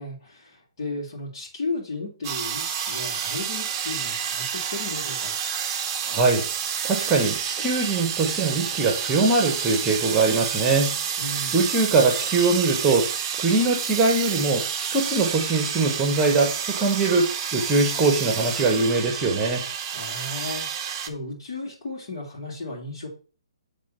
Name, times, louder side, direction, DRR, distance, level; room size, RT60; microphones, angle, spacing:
voice 1, 0.0-5.3 11.2-11.6 19.9-23.1, left 2 dB, 45° left, -6 dB, 2.8 m, -35 dB
sound 1, 2.2-21.1, right 8 dB, 30° right, 0.8 m, -29 dB
voice 2, 6.0-6.4 6.8-10.9 11.5-13.1 13.3-14.6 14.9-19.6, right 3 dB, 15° right, 1 dB, 1.3 m, -22 dB
8.4 x 3.7 x 5.6 m, 0.39 s
figure-of-eight pair, 135°, 3 cm